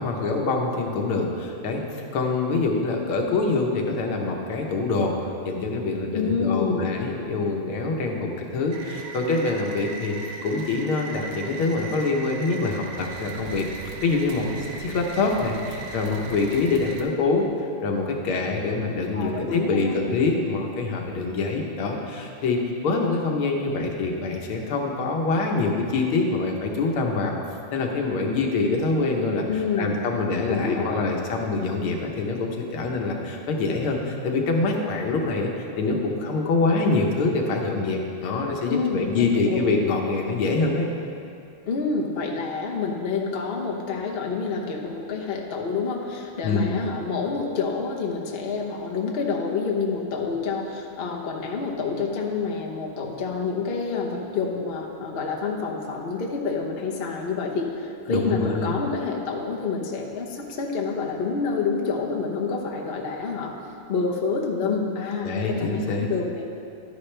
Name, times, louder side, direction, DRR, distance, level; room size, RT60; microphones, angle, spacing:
voice 1, 0.0-10.1 10.4-13.7 14.0-17.5 17.8-27.3 27.7-29.4 29.8-40.9 46.4-46.8 58.1-58.8 65.2-66.1, left 3 dB, 75° left, 1 dB, 1.9 m, -25 dB
voice 2, 6.1-6.9 19.1-20.0 29.5-29.9 30.5-31.0 38.7-39.6 41.7-63.5 63.9-66.4, left 4 dB, 50° left, 0 dB, 0.7 m, -28 dB
sound 1, 8.7-17.0, right 3 dB, 70° right, 1.5 m, -37 dB
11.5 x 10.0 x 3.3 m, 2.6 s
omnidirectional pair, 2.4 m